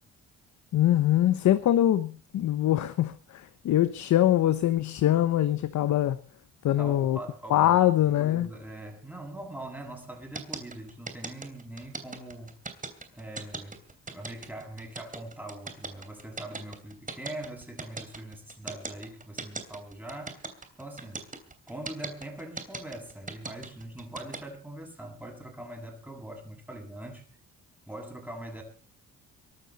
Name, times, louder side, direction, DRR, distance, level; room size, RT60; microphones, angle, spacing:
voice 1, 0.7-6.2 6.6-7.2 7.5-8.5, left 12 dB, 70° left, 1.1 m, -23 dB
voice 2, 6.8-12.6 13.2-13.8 14.1-20.4 20.8-21.2 21.7-27.3 27.9-28.6, right 1 dB, 5° right, 7.6 m, -42 dB
sound 1, 10.3-24.4, right 4 dB, 25° right, 3.1 m, -38 dB
22.5 x 12.5 x 4.2 m
cardioid pair, 90°, 30 cm